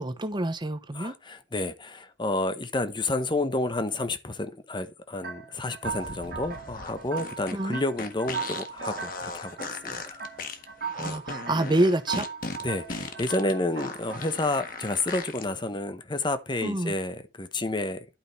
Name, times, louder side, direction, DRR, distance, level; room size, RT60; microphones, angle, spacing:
voice 1, 0.0-1.1 7.5-7.8 10.9-12.3 16.6-16.9, right 1 dB, 25° right, 1.0 m, -27 dB
voice 2, 0.9-9.6 9.8-10.2 12.6-18.0, left 2 dB, 25° left, 1.0 m, -30 dB
sound 1, 5.2-15.1, right 6 dB, 55° right, 1.5 m, -39 dB
sound 2, 5.8-15.4, left 3 dB, 50° left, 1.5 m, -38 dB
11.5 x 4.8 x 5.7 m
head